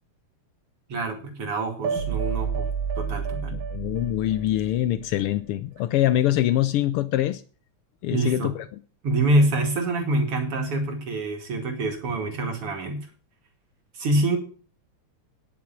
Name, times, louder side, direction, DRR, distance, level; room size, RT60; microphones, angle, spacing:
voice 1, 0.9-2.7 3.0-3.6 8.1-8.5 9.0-13.0 14.0-14.4, right 2 dB, 50° right, 3.3 m, -25 dB
sound 1, 1.8-5.0, right 6 dB, 80° right, 2.5 m, -30 dB
voice 2, 3.5-7.4 8.0-8.8, left 13 dB, 85° left, 1.2 m, -24 dB
10.5 x 7.4 x 7.5 m
omnidirectional pair, 3.3 m